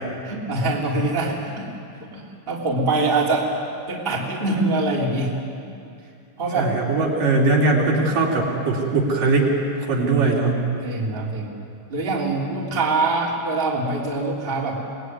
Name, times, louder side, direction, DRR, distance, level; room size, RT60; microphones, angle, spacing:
voice 1, 0.2-1.7 2.1-3.5 3.9-5.3 6.4-6.7 10.8-11.5 11.9-14.8, right 3 dB, 15° right, -3 dB, 3.2 m, -24 dB
voice 2, 6.5-9.5 9.8-10.6, right 3 dB, 60° right, -2 dB, 4.9 m, -20 dB
26.0 x 20.0 x 9.6 m, 2.4 s
omnidirectional pair, 4.4 m